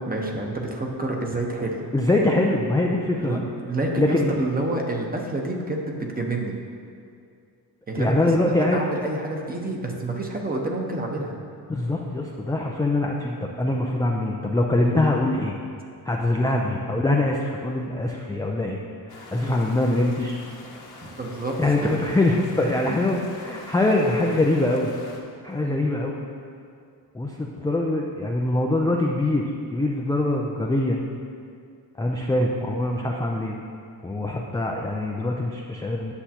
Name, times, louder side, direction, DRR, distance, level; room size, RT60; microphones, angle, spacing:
voice 1, 0.0-1.9 3.2-6.5 7.9-11.3 16.4-16.6 19.4-19.6 21.0-22.0 22.9-23.2 25.6-25.8, right 2 dB, 20° right, 1 dB, 1.0 m, -29 dB
voice 2, 1.9-3.4 4.0-4.3 8.0-8.8 11.7-15.6 16.1-18.8 19.1-20.4 21.6-24.9 25.4-26.1 27.1-31.0 32.0-33.6 34.0-36.1, left 2 dB, 10° left, -1 dB, 0.4 m, -23 dB
sound 1, 19.1-25.2, left 2 dB, 65° left, 1.3 m, -44 dB
9.9 x 6.9 x 2.9 m, 2.3 s
cardioid pair, 95°, 40 cm